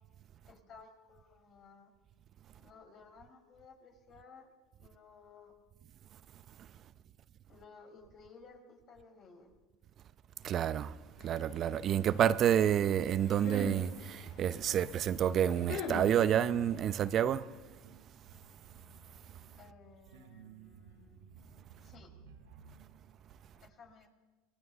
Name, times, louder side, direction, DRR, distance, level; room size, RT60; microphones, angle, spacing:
voice 1, 0.5-1.9 2.6-4.5 4.8-5.5 7.5-9.5 19.6-21.2 21.8-22.1 23.5-24.1, left 4 dB, 45° left, 5.1 m, -57 dB
voice 2, 10.4-11.0 11.2-17.5, right 10 dB, 45° right, 0.8 m, -29 dB
sound 1, 11.2-17.2, left 2 dB, 70° left, 7.3 m, -44 dB
sound 2, 13.5-23.4, right 4 dB, 80° right, 3.0 m, -58 dB
24.5 x 20.0 x 6.9 m
hypercardioid pair, 90°, 0 cm